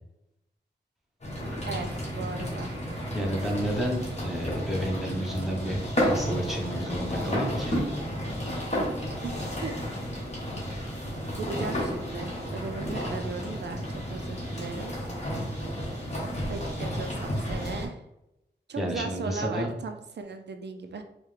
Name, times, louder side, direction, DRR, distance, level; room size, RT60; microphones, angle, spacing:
sound 1, 1.2-17.9, equal, 40° left, 1.3 m, -32 dB
voice 1, 1.7-2.7 9.2-9.3 9.6-10.1 11.4-14.9 16.5-18.0 18.7-21.0, right 4 dB, 75° right, 6 dB, 0.4 m, -37 dB
voice 2, 3.1-7.8 18.8-19.7, equal, ahead, -2 dB, 0.9 m, -31 dB
4.6 x 2.2 x 3.2 m, 0.87 s
wide cardioid pair, 90°, 18 cm